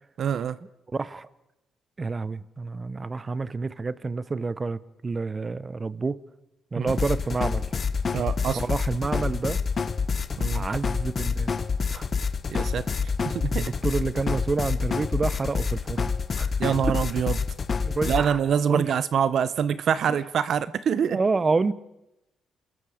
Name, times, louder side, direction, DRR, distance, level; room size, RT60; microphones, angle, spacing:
voice 1, 0.2-0.6 6.8-7.0 8.1-8.6 10.4-10.6 12.5-12.9 13.2-13.7 16.6-17.4 18.1-21.2, right 8 dB, 60° right, 0.7 m, -25 dB
voice 2, 0.9-1.3 2.0-6.2 6.7-7.7 8.5-9.6 10.5-11.5 11.9-12.1 13.5-16.1 16.4-16.5 16.9-17.0 17.8-18.4 18.7-18.9 20.1-20.2 21.1-21.7, right 4 dB, 30° right, 0.9 m, -28 dB
sound 1, 6.9-18.3, left 5 dB, 40° left, 1.2 m, -27 dB
28.5 x 20.5 x 5.0 m
cardioid pair, 90°, 0 cm